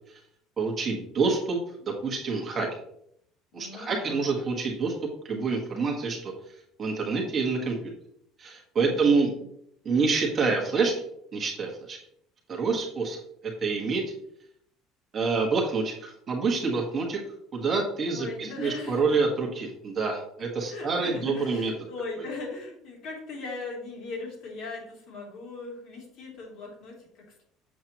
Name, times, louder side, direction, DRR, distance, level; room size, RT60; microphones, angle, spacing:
voice 1, 0.6-2.7 3.5-4.9 5.2-6.3 6.8-7.9 8.4-9.3 9.8-10.9 11.3-12.0 12.5-14.0 15.1-17.2 17.5-21.7, right 4 dB, 30° right, 0 dB, 1.6 m, -27 dB
voice 2, 3.5-4.3 8.8-9.3 18.0-19.2 20.7-27.4, left 3 dB, 50° left, -2 dB, 3.1 m, -39 dB
7.7 x 7.6 x 3.0 m, 0.71 s
cardioid pair, 160°, 0 cm